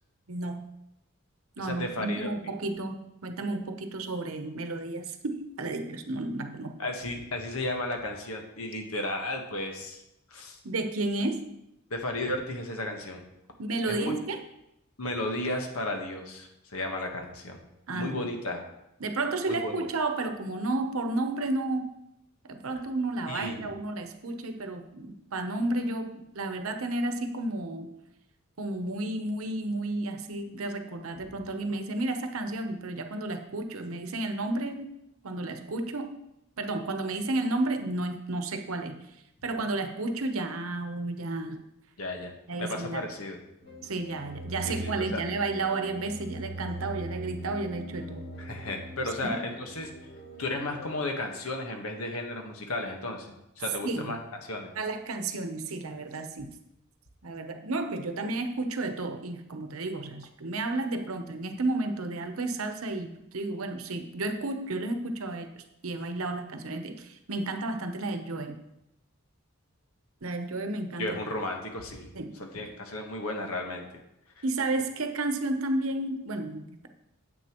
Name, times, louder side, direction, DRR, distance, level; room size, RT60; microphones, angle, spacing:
voice 1, 0.3-0.7 1.6-6.7 10.6-11.5 13.6-14.4 17.9-18.3 19.0-21.9 22.4-27.9 28.6-34.9 35.2-36.1 36.6-39.0 39.4-41.6 42.5-43.0 43.8-48.2 49.2-49.4 53.8-54.2 54.7-56.5 57.2-68.6 70.2-71.2 72.1-72.4 74.4-76.9, right 2 dB, 75° right, 6 dB, 0.8 m, -32 dB
voice 2, 1.6-2.3 6.8-10.0 10.3-10.6 11.9-13.2 13.9-14.2 15.0-17.6 17.9-18.6 19.5-19.9 23.3-23.7 42.0-42.3 42.6-43.4 44.6-45.2 48.4-49.9 50.4-54.2 54.5-54.7 71.0-72.1 72.4-73.9 74.4-74.5, left 1 dB, 80° left, 3 dB, 1.3 m, -34 dB
sound 1, 43.6-50.9, right 1 dB, 45° left, 3.0 m, -41 dB
9.5 x 7.8 x 3.0 m, 0.86 s
head